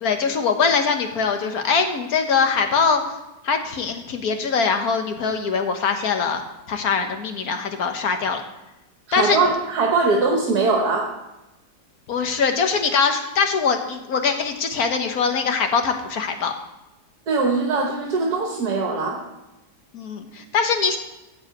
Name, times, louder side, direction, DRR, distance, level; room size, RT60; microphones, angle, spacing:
voice 1, 0.0-3.0 3.4-6.4 6.7-8.4 9.1-9.4 12.1-16.5 19.9-21.0, left 5 dB, 65° left, 6 dB, 1.6 m, -22 dB
voice 2, 9.1-11.1 17.3-19.2, right 3 dB, 70° right, 1 dB, 1.8 m, -21 dB
13.5 x 4.8 x 8.5 m, 0.99 s
omnidirectional pair, 1.8 m